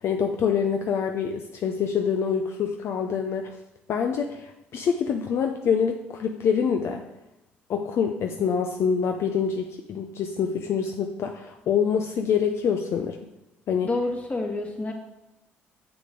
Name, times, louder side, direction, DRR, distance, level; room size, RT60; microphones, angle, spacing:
voice 1, 0.0-3.5 3.9-7.0 7.7-13.2 13.7-13.9, left 7 dB, 60° left, 4 dB, 0.6 m, -26 dB
voice 2, 13.8-14.9, left 2 dB, 30° left, 2 dB, 1.8 m, -28 dB
6.9 x 6.9 x 3.8 m, 0.92 s
supercardioid pair, 65°, 5 cm